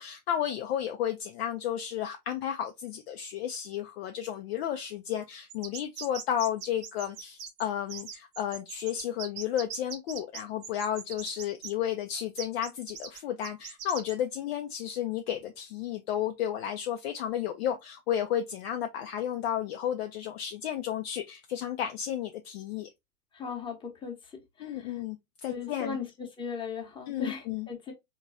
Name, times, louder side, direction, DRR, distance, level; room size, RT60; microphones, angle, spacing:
voice 1, 0.0-22.9 24.6-25.2 25.4-26.0 27.1-27.7, left 10 dB, 40° left, 0.5 m, -32 dB
sound 1, 5.5-11.7 12.4-14.1, right 7 dB, 45° right, 1.1 m, -41 dB
voice 2, 23.3-25.0 25.5-27.9, left 5 dB, 10° left, 1.0 m, -38 dB
3.9 x 3.0 x 2.5 m
figure-of-eight pair, 100°, 48 cm